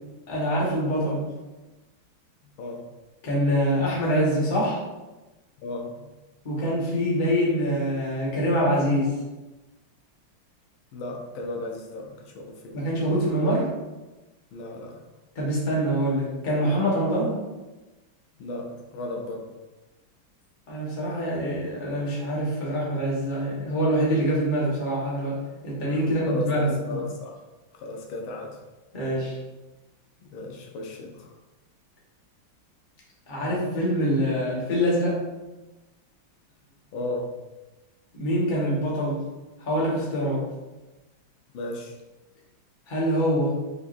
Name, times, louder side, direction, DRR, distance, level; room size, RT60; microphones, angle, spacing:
voice 1, 0.3-1.3 3.2-4.8 6.4-9.1 12.7-13.7 15.3-17.4 20.7-25.4 25.6-27.0 28.9-29.4 33.3-35.2 38.1-39.2 39.6-40.4 42.9-43.6, equal, 30° left, -5 dB, 1.2 m, -25 dB
voice 2, 5.6-6.1 10.9-12.8 14.5-15.1 18.4-19.5 26.3-27.3 27.7-28.6 30.2-31.3 36.9-37.3 41.5-42.0, left 2 dB, 85° left, 1 dB, 1.5 m, -35 dB
5.0 x 3.8 x 2.6 m, 1.1 s
omnidirectional pair, 2.2 m